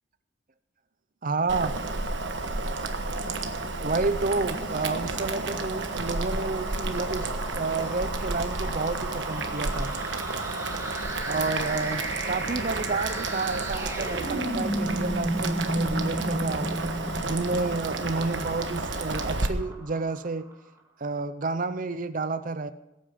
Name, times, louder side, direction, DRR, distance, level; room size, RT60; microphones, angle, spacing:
voice 1, 1.2-1.8 3.8-9.9 11.3-16.8 17.2-20.5 21.0-22.7, right 3 dB, 45° right, 11 dB, 0.7 m, -30 dB
Boiling, 1.5-19.5, right 3 dB, 70° right, 1.3 m, -32 dB
sound 1, 4.2-20.5, right 1 dB, 15° right, 2.1 m, -35 dB
21.0 x 8.9 x 5.1 m, 0.93 s
head